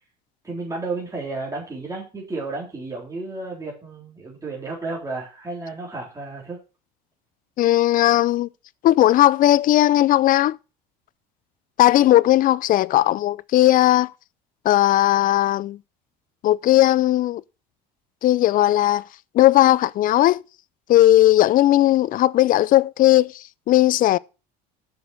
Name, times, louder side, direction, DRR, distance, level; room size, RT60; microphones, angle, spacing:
voice 1, 0.4-6.6, right 3 dB, 15° right, 3.7 m, -32 dB
voice 2, 7.6-8.5 8.8-10.6 11.8-14.1 14.6-15.8 16.4-17.4 18.2-19.0 19.3-20.4 20.9-24.2, left 14 dB, 45° left, 0.4 m, -17 dB
6.9 x 6.4 x 6.0 m
supercardioid pair, 95°, 20 cm